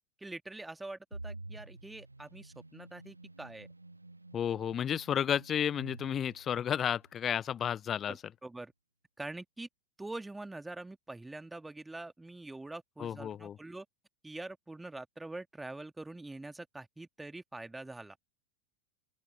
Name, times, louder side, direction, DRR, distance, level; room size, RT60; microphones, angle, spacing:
voice 1, 0.2-3.7 8.1-8.7 9.2-9.7 10.0-13.9 14.2-18.2, right 2 dB, 5° right, 2.0 m, -44 dB
sound 1, 1.1-7.1, right 2 dB, 85° right, 2.0 m, -49 dB
voice 2, 4.3-8.1 13.0-13.6, left 9 dB, 25° left, 0.6 m, -32 dB
open air
figure-of-eight pair, 90°, 0 cm